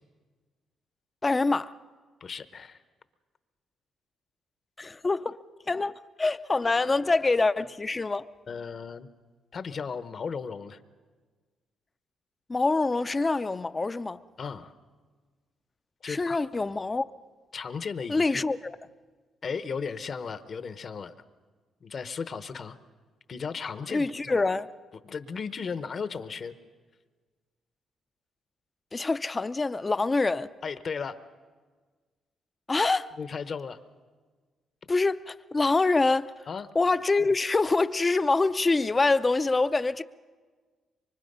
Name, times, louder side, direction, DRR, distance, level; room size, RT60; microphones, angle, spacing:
voice 1, 1.2-1.7 4.8-8.3 12.5-14.2 16.0-17.0 18.1-18.8 23.9-24.7 28.9-30.5 32.7-33.1 34.9-36.5 36.7-40.0, left 3 dB, 25° left, 0.6 m, -25 dB
voice 2, 2.2-2.8 8.5-9.1 9.5-10.8 14.4-14.7 16.0-16.4 17.5-18.2 19.4-21.1 21.8-22.8 23.3-24.4 25.0-26.5 30.6-31.2 33.2-33.8 36.5-36.7, left 5 dB, 45° left, 1.0 m, -35 dB
24.5 x 24.0 x 5.5 m
cardioid pair, 90°, 0 cm